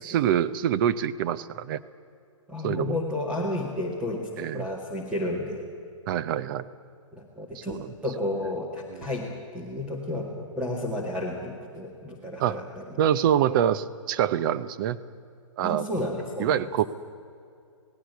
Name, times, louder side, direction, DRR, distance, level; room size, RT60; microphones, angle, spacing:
voice 1, 0.0-1.8 2.6-3.0 4.4-4.7 6.1-6.7 7.6-7.9 8.9-9.0 12.4-12.6 13.0-15.0 15.6-15.8 16.4-16.9, right 10 dB, 40° right, 15 dB, 0.7 m, -25 dB
voice 2, 2.5-5.6 7.1-9.3 9.5-12.8 15.6-16.6, left 1 dB, 5° right, -2 dB, 1.9 m, -32 dB
17.5 x 16.0 x 9.4 m, 2.4 s
hypercardioid pair, 140°, 17 cm